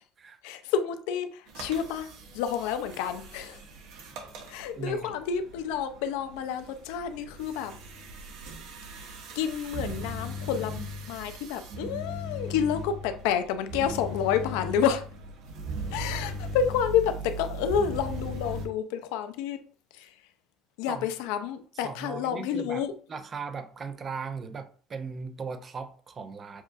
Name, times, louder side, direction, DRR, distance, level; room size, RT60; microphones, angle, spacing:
voice 1, 0.4-3.6 4.5-7.8 8.9-15.1 15.9-19.6 19.9-20.1 20.8-22.9, left 8 dB, 90° left, 0.5 m, -29 dB
sound 1, 1.5-18.7, equal, 70° right, 0.9 m, -39 dB
voice 2, 4.8-5.1 20.9-21.1 21.8-22.8 23.1-26.6, right 5 dB, 30° right, 0.5 m, -38 dB
7.1 x 2.5 x 2.6 m
cardioid pair, 135°, 0 cm